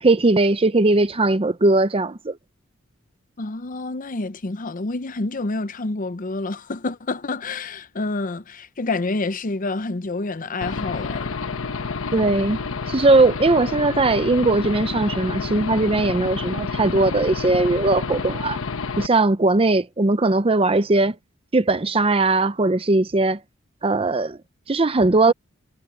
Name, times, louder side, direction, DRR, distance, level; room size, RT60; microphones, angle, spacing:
voice 1, 0.0-2.4 12.1-12.6 12.9-18.6 19.0-21.2 21.5-23.4 23.8-24.4 24.7-25.3, right 2 dB, 25° right, 0.6 m, -19 dB
voice 2, 3.4-11.3 25.3-25.4, left 3 dB, 40° left, 0.7 m, -28 dB
Aircraft / Engine, 10.6-19.1, left 4 dB, 70° left, 1.0 m, -29 dB
head